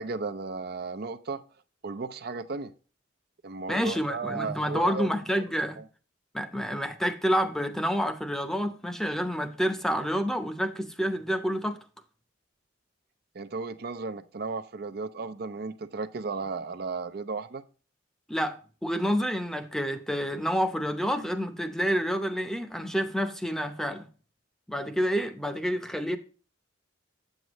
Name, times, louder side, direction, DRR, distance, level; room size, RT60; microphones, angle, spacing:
voice 1, 0.0-1.4 1.8-2.7 3.4-5.1 13.3-17.6, right 4 dB, 50° right, 0.5 m, -34 dB
voice 2, 3.7-5.8 6.3-11.8 18.3-24.1 24.7-26.2, equal, ahead, 0.7 m, -28 dB
8.2 x 7.9 x 3.0 m
head